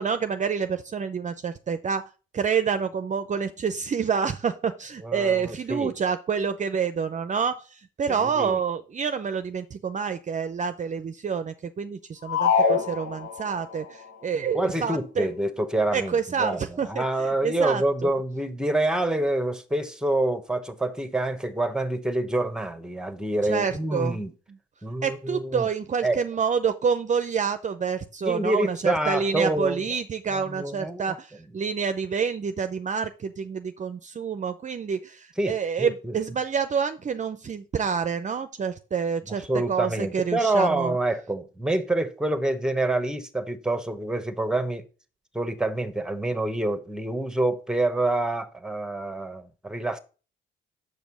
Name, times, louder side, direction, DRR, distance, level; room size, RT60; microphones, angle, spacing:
voice 1, 0.0-2.0 2.3-15.3 15.9-17.0 17.4-18.1 23.5-24.2 25.0-41.0, right 6 dB, 40° right, 0.6 m, -28 dB
voice 2, 5.0-6.0 8.1-8.6 14.5-24.3 24.8-25.7 26.0-26.2 28.2-29.9 30.3-31.2 35.4-36.2 39.3-44.8 45.3-50.0, right 2 dB, 5° right, 1.1 m, -27 dB
sound 1, 12.3-13.7, left 5 dB, 80° left, 2.4 m, -24 dB
6.9 x 5.3 x 6.1 m
cardioid pair, 90°, 20 cm